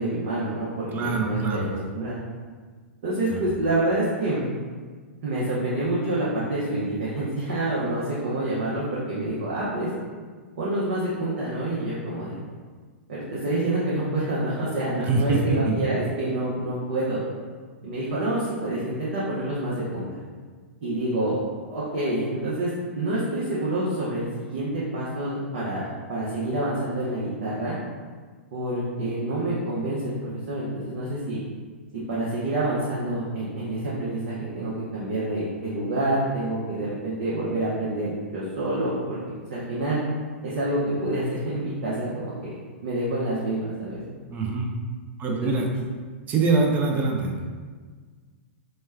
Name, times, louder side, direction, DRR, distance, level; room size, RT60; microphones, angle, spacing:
voice 1, 0.0-1.6 1.9-2.2 3.0-4.4 5.2-9.9 10.6-12.4 13.1-17.2 17.8-20.0 20.8-21.4 21.7-27.7 28.5-31.4 32.1-39.2 39.5-40.0 40.4-42.5 42.8-44.0 45.2-45.6, right 1 dB, 60° right, -8 dB, 0.8 m, -27 dB
voice 2, 0.9-1.7 3.3-3.4 15.1-15.8 44.3-44.7 45.2-45.7 46.3-47.5, right 4 dB, 25° right, 1 dB, 0.5 m, -24 dB
3.1 x 2.2 x 3.4 m, 1.5 s
figure-of-eight pair, 105°, 7 cm